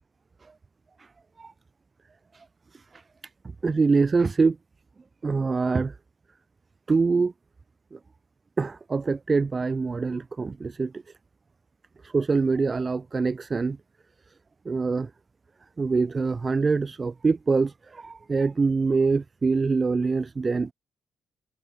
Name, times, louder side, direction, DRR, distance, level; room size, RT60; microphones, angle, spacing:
voice 1, 3.6-4.6 5.2-5.9 6.9-7.3 7.9-8.0 8.6-10.9 12.0-13.8 14.7-15.1 15.8-20.7, right 4 dB, 30° right, 1.9 m, -24 dB
cardioid pair, 85°, 0 cm